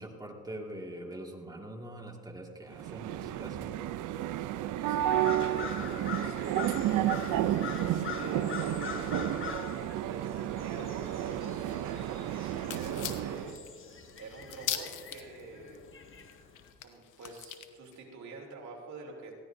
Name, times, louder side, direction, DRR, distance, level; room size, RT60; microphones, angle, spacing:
voice 1, 0.0-3.7, right 1 dB, 15° right, 1 dB, 2.1 m, -43 dB
sound 1, 2.7-13.6, right 12 dB, 80° right, 0.6 m, -32 dB
voice 2, 4.9-7.0 8.0-13.5 14.2-15.8 16.8-19.3, right 3 dB, 65° right, -1 dB, 3.0 m, -47 dB
sound 2, 5.0-16.7, left 6 dB, 40° left, 1.4 m, -44 dB
sound 3, 12.7-15.4 15.8-15.9 16.1-18.0, left 10 dB, 85° left, 1.1 m, -39 dB
20.5 x 15.5 x 2.7 m, 2.2 s
cardioid pair, 90°, 30 cm